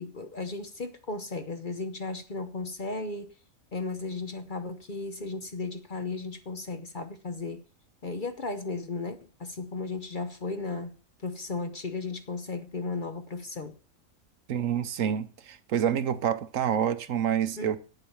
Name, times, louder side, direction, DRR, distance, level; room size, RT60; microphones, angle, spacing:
voice 1, 0.0-3.3 3.7-7.6 8.0-10.9 11.2-13.7 17.6-17.8, left 3 dB, 40° left, 0.9 m, -35 dB
voice 2, 14.5-17.8, right 9 dB, 70° right, 1.1 m, -27 dB
9.0 x 7.9 x 7.0 m
omnidirectional pair, 1.5 m